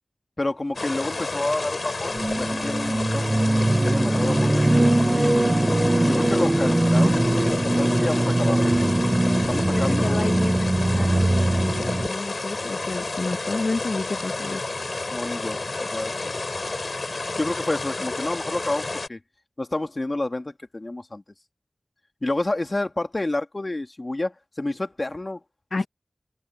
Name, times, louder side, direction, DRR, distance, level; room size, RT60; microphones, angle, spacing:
voice 1, 0.4-3.3 3.8-4.7 5.1-5.8 6.1-8.7 9.2-10.3 15.1-15.6 15.9-16.2 17.3-19.2 19.6-21.2 22.2-25.4, left 2 dB, 45° left, 2.3 m, -29 dB
sound 1, 0.7-19.1, left 3 dB, 60° left, 5.3 m, -30 dB
sound 2, 2.1-12.1, right 1 dB, 30° right, 0.9 m, -21 dB
voice 2, 9.6-14.6 25.7-25.9, left 3 dB, 80° left, 1.1 m, -30 dB
wide cardioid pair, 50°, 0 cm